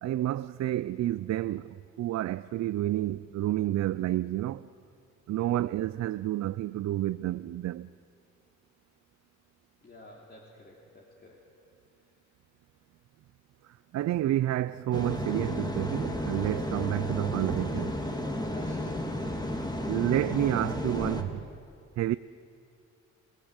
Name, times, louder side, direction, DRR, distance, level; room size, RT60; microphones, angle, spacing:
voice 1, 0.0-4.7 5.3-7.9 13.6-18.0 19.9-21.5 22.0-22.2, right 14 dB, 60° right, 0.5 m, -30 dB
voice 2, 9.8-11.5 18.5-19.1, left 1 dB, 35° left, 3.3 m, -50 dB
sound 1, 14.9-21.2, left 1 dB, 15° left, 2.3 m, -33 dB
29.0 x 17.5 x 8.1 m
cardioid pair, 90°, 30 cm